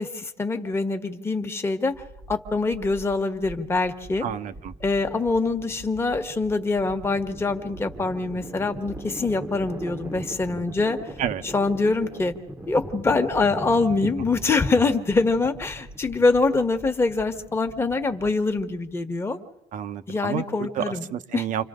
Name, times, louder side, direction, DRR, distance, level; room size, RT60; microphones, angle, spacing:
voice 1, 0.0-1.9 2.3-4.3 4.8-11.0 11.4-12.3 12.7-19.4 20.1-21.5, left 3 dB, 15° left, 5 dB, 1.6 m, -24 dB
sound 1, 1.9-18.9, right 1 dB, 10° right, 1.3 m, -41 dB
voice 2, 4.2-4.7 11.2-11.4 19.7-21.6, right 9 dB, 50° right, 10 dB, 1.2 m, -30 dB
29.5 x 27.0 x 3.8 m, 0.93 s
cardioid pair, 140°, 17 cm